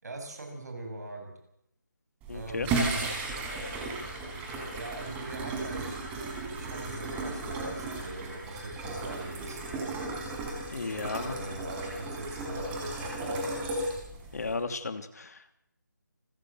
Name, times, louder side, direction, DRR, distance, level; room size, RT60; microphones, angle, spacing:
voice 1, 0.0-1.3 2.3-3.2 4.7-5.9 6.6-9.6 10.9-13.4, right 2 dB, 55° right, 4 dB, 7.9 m, -41 dB
sound 1, 2.2-14.6, right 2 dB, 10° right, 4.7 m, -35 dB
voice 2, 2.3-2.7 10.7-11.3 14.3-15.6, left 4 dB, 55° left, 9 dB, 2.7 m, -34 dB
29.0 x 15.0 x 7.8 m, 0.80 s
figure-of-eight pair, 160°, 11 cm